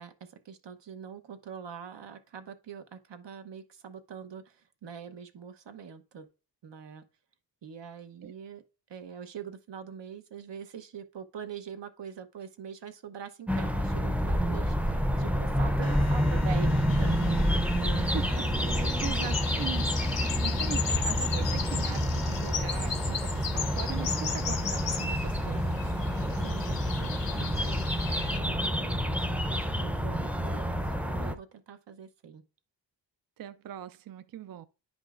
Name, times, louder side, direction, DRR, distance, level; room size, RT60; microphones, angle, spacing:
voice 1, 0.0-6.3 6.6-7.0 7.6-8.6 8.9-18.1 18.8-19.0 26.0-26.1 26.4-32.4, right 7 dB, 75° right, 1.0 m, -44 dB
sound 1, 13.5-31.4, equal, 5° right, 0.5 m, -28 dB
sound 2, 15.8-25.2, left 6 dB, 65° left, 0.7 m, -45 dB
sound 3, 16.9-28.4, left 6 dB, 90° left, 1.0 m, -36 dB
voice 2, 18.0-26.0 33.4-34.7, right 10 dB, 55° right, 0.5 m, -41 dB
10.0 x 5.2 x 2.5 m
wide cardioid pair, 80°, 43 cm